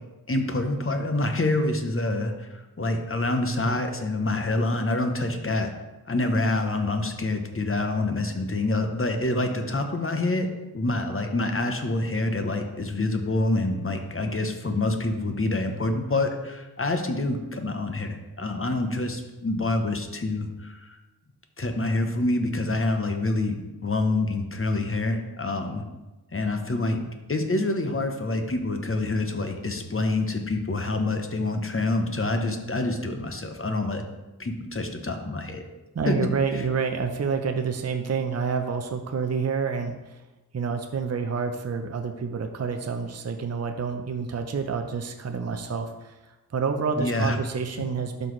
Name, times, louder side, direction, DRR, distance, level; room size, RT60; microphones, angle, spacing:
voice 1, 0.3-5.7 6.1-10.5 10.7-21.0 21.6-25.8 26.3-27.0 27.3-34.0 34.4-35.6 36.1-36.2 36.5-36.6 47.0-47.4, left 2 dB, 35° left, 5 dB, 0.8 m, -26 dB
voice 2, 35.9-40.2 40.5-46.1 46.5-48.3, right 5 dB, 40° right, 6 dB, 0.6 m, -28 dB
11.5 x 4.1 x 3.2 m, 1.1 s
wide cardioid pair, 75°, 40 cm